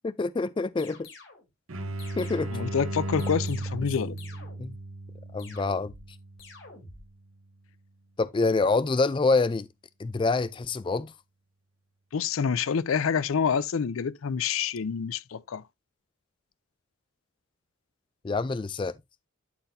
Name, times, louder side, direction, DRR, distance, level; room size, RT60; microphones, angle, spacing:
voice 1, 0.0-1.1 2.2-2.5 4.6-4.7 5.3-5.9 8.2-9.7 10.0-11.1 18.2-19.0, left 3 dB, 25° left, 0.3 m, -26 dB
sound 1, 0.8-1.5 2.0-2.7 3.2-4.8 5.4-6.1 6.4-7.1, left 4 dB, 65° left, 2.8 m, -49 dB
sound 2, 1.7-7.2, right 1 dB, 85° right, 1.0 m, -36 dB
voice 2, 2.5-4.2 12.1-15.6, left 6 dB, 85° left, 0.5 m, -27 dB
12.0 x 4.2 x 2.6 m
head